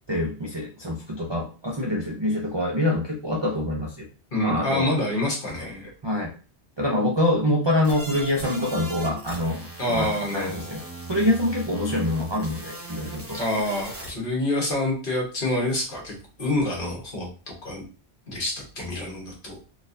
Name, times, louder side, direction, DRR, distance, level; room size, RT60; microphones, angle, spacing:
voice 1, 0.1-4.1 4.4-4.9 6.0-6.3 6.8-10.8 11.1-13.4, left 1 dB, 40° right, -2 dB, 0.4 m, -25 dB
voice 2, 4.3-5.9 9.8-10.7 13.3-17.3 17.6-17.8 18.3-19.6, left 1 dB, 55° left, -1 dB, 1.3 m, -27 dB
sound 1, 7.8-14.1, right 1 dB, 15° right, 0.8 m, -38 dB
4.1 x 2.5 x 2.6 m, 0.37 s
omnidirectional pair, 1.1 m